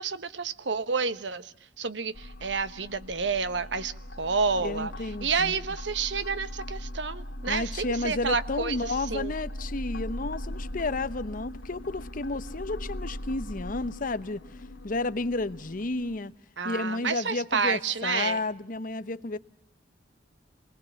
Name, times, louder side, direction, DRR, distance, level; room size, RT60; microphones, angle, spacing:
voice 1, 0.0-4.9 5.2-9.3 16.6-18.4, right 5 dB, 75° right, 1.1 m, -30 dB
sound 1, 2.1-16.2, left 1 dB, 85° left, 2.0 m, -39 dB
voice 2, 4.6-5.6 7.5-14.4 14.8-16.3 16.6-19.4, left 2 dB, 50° left, 0.9 m, -32 dB
26.0 x 20.0 x 7.1 m
head